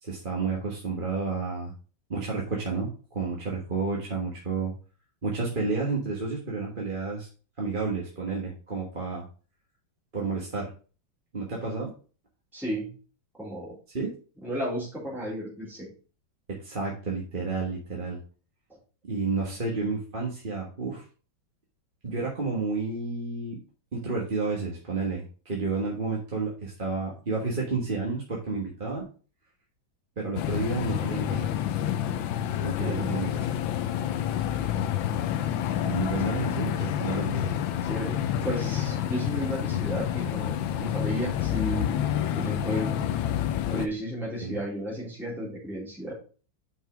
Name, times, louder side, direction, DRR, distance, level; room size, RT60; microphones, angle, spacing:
voice 1, 0.0-1.7 2.1-4.7 5.2-7.3 7.6-9.2 10.1-10.7 11.3-11.9 13.9-14.1 16.5-18.2 19.0-21.0 22.0-23.6 23.9-29.1 30.2-31.5 32.6-33.5 35.8-37.5 44.4-44.6, right 4 dB, 30° right, -3 dB, 1.5 m, -31 dB
voice 2, 12.5-12.9 13.4-13.7 14.4-15.9 32.6-33.1 37.8-42.0 42.3-43.0 43.7-46.2, equal, ahead, -6 dB, 3.1 m, -33 dB
sound 1, 30.4-43.9, left 10 dB, 80° left, 1.4 m, -28 dB
6.1 x 5.5 x 4.8 m, 0.37 s
omnidirectional pair, 2.2 m